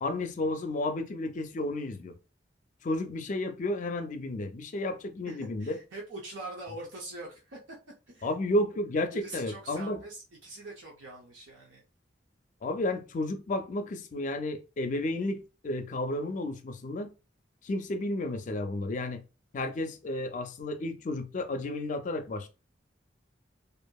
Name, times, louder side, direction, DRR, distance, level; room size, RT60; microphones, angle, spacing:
voice 1, 0.0-2.1 2.8-5.8 8.2-10.0 12.6-17.1 17.6-19.2 19.5-22.5, left 1 dB, 45° left, 0.4 m, -32 dB
voice 2, 5.3-7.8 8.1-8.3 9.1-11.8, right 2 dB, 90° right, 0.7 m, -43 dB
2.7 x 2.5 x 2.3 m
head